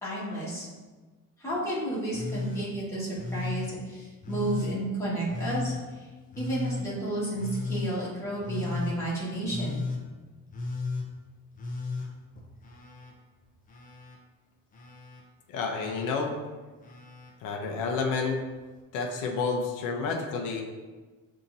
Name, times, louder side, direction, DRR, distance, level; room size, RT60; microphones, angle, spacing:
voice 1, 0.0-0.7 1.4-5.7 6.4-9.8, right 1 dB, 10° left, -9 dB, 1.5 m, -32 dB
Telephone, 2.1-2.7 3.2-3.7 4.2-4.8 5.3-5.8 6.3-6.9 7.4-7.9 8.4-9.0 9.5-10.0 10.5-11.1 11.6-13.1 13.4-14.2 14.7-15.2 15.8-16.3 16.8-17.3 18.5-18.6, left 3 dB, 25° left, 0.6 m, -35 dB
voice 2, 15.5-16.3 17.4-18.4 18.9-20.6, left 4 dB, 65° left, 1 dB, 0.7 m, -29 dB
7.0 x 2.8 x 2.6 m, 1.3 s
cardioid pair, 165°, 33 cm